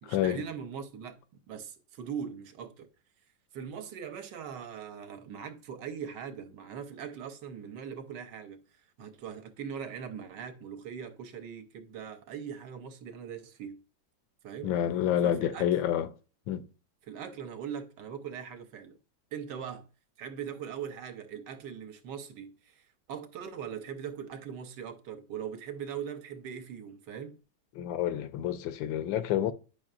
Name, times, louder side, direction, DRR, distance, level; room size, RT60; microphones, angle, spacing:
voice 1, 0.0-2.9 3.5-8.6 9.0-13.8 14.4-14.7 15.2-15.7 17.0-19.0 19.3-19.9 20.2-27.4, right 7 dB, 70° right, 1.3 m, -41 dB
voice 2, 14.6-16.1 16.5-16.6 27.8-29.5, left 10 dB, 85° left, 1.4 m, -28 dB
8.9 x 5.3 x 2.4 m
omnidirectional pair, 2.0 m